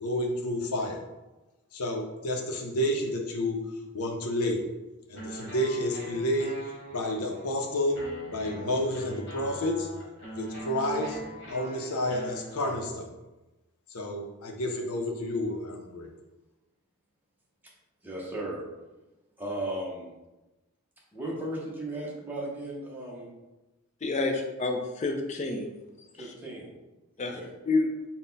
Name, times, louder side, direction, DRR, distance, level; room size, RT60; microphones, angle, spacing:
voice 1, 0.0-1.0 1.7-3.6 3.9-4.6 5.1-6.6 6.9-8.0 8.3-9.9 10.3-11.2 11.5-13.1 13.9-16.1, left 1 dB, 90° left, 2 dB, 0.6 m, -30 dB
sound 1, 5.1-13.1, equal, 50° left, 1.2 m, -42 dB
voice 2, 18.0-18.6 19.4-20.1 21.1-23.3 26.1-26.7 27.3-27.5, right 1 dB, 10° right, -5 dB, 0.7 m, -36 dB
voice 3, 24.0-25.7 27.2-27.3 27.7-27.9, left 3 dB, 30° left, 4 dB, 0.4 m, -28 dB
3.9 x 2.2 x 3.9 m, 1.1 s
head